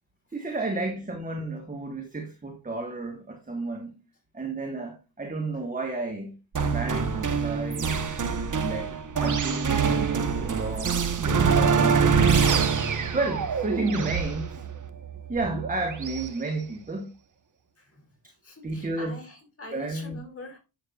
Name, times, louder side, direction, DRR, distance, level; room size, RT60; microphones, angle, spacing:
voice 1, 0.3-4.0 4.3-6.4 6.7-7.9 8.5-12.4 12.9-14.6 15.3-17.1 18.6-19.1 19.7-20.2, right 2 dB, 20° right, 1.7 m, -32 dB
sound 1, 6.5-16.3, right 6 dB, 45° right, 1.3 m, -25 dB
voice 2, 17.8-18.1 18.4-20.6, left 2 dB, 30° left, 5.0 m, -44 dB
10.0 x 7.2 x 2.5 m
cardioid pair, 90°, 44 cm